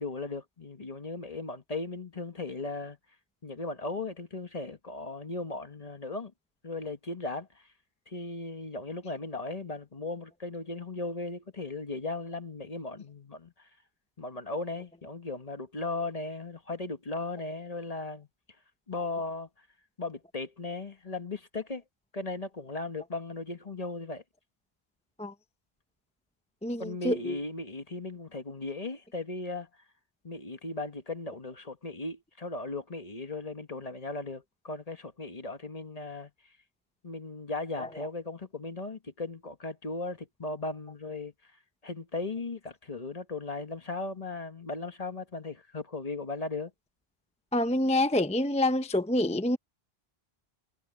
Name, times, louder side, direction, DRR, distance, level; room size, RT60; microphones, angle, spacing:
voice 1, 0.0-3.0 3.4-6.3 6.6-7.6 8.1-13.7 14.2-18.3 18.9-19.5 20.0-21.8 22.1-24.2 26.8-29.7 30.2-36.3 37.0-41.3 41.8-46.7, left 3 dB, 35° left, 1.4 m, -37 dB
voice 2, 26.6-27.4 37.8-37.9 47.5-49.6, left 1 dB, 5° left, 0.7 m, -27 dB
omnidirectional pair, 1.1 m